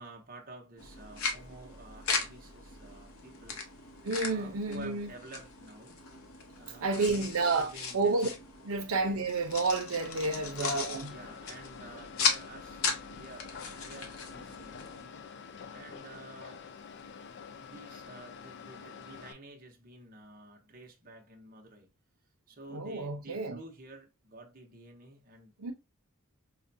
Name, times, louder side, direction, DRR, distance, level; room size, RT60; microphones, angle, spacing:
voice 1, 0.0-3.6 4.2-5.9 6.6-8.4 8.9-9.1 10.5-12.9 13.1-15.1 15.7-16.6 17.5-21.9 22.5-25.5, right 2 dB, 40° right, 0.9 m, -51 dB
sound 1, 0.8-15.1, left 5 dB, 85° left, 0.9 m, -38 dB
voice 2, 4.0-5.1 6.8-8.3 8.6-11.1 22.7-23.6 25.6-25.7, right 3 dB, 85° right, 0.7 m, -30 dB
sound 2, 10.0-19.3, left 6 dB, 55° left, 0.4 m, -47 dB
5.0 x 2.2 x 2.6 m
head